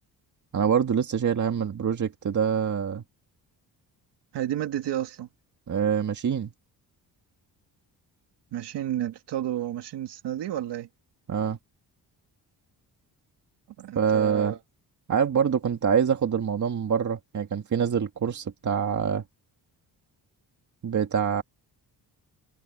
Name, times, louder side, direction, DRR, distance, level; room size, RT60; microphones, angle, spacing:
voice 1, 0.5-3.0 5.7-6.5 11.3-11.6 14.0-14.6 15.1-19.2 20.8-21.4, right 7 dB, 45° right, 2.0 m, -25 dB
voice 2, 4.3-5.3 8.5-10.9 13.8-14.6, right 11 dB, 85° right, 2.2 m, -31 dB
cardioid pair, 115°, 40 cm